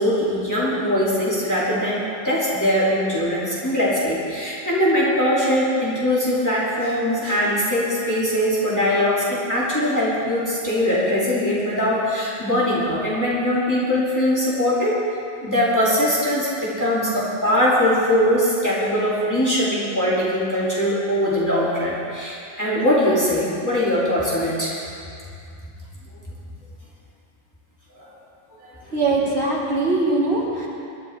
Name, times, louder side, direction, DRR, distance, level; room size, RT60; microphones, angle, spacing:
voice 1, 0.0-15.0 15.4-24.8 27.9-28.1 28.6-28.8, left 1 dB, 15° left, -8 dB, 2.9 m, -21 dB
voice 2, 28.8-30.7, right 2 dB, 70° right, -5 dB, 3.0 m, -21 dB
22.5 x 12.0 x 3.6 m, 2.5 s
omnidirectional pair, 1.1 m